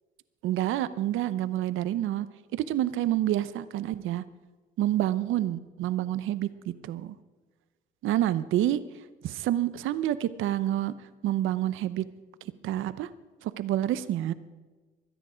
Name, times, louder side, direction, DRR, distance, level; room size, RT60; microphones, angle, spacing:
voice 1, 0.4-2.3 2.5-4.2 4.8-6.5 6.8-7.1 8.0-8.8 9.2-10.9 11.2-12.0 12.6-13.1 13.4-14.3, right 13 dB, 85° right, 14 dB, 0.8 m, -28 dB
22.5 x 10.0 x 5.1 m, 1.3 s
cardioid pair, 90°, 20 cm